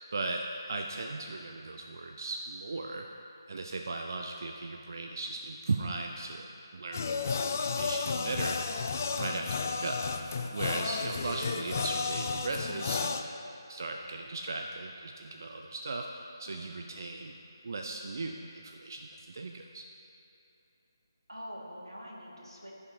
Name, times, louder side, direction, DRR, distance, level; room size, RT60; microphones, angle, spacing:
voice 1, 0.1-3.1 3.5-6.5 6.7-8.6 9.1-10.0 10.5-13.2 13.7-17.4 17.6-19.8, right 3 dB, 50° right, 3 dB, 0.4 m, -37 dB
sound 1, 6.9-13.2, left 5 dB, 35° left, 0.3 m, -33 dB
voice 2, 16.5-16.8 21.3-22.7, equal, 90° right, -3 dB, 1.8 m, -45 dB
13.5 x 5.7 x 2.7 m, 3.0 s
figure-of-eight pair, 155°, 2 cm